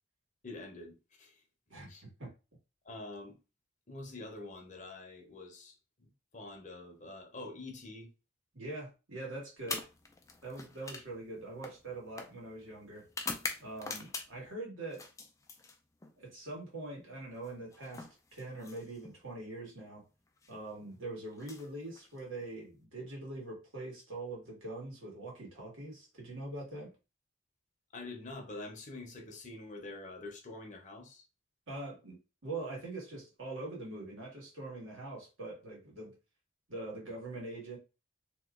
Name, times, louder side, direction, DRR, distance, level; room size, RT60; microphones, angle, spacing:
voice 1, 0.4-1.4 1.9-2.0 2.8-3.4 3.9-8.1 27.9-31.3, left 2 dB, 35° left, 0.7 m, -46 dB
voice 2, 1.7-2.3 8.5-9.9 10.4-13.1 13.6-15.0 16.2-18.0 18.3-20.0 20.5-26.9 31.7-36.1 36.7-37.8, right 2 dB, 80° right, 1.5 m, -43 dB
sound 1, 9.6-14.5 14.9-16.2 17.4-19.2 20.3-20.5 21.3-22.5, left 4 dB, 15° left, 0.3 m, -44 dB
2.9 x 2.3 x 3.6 m
head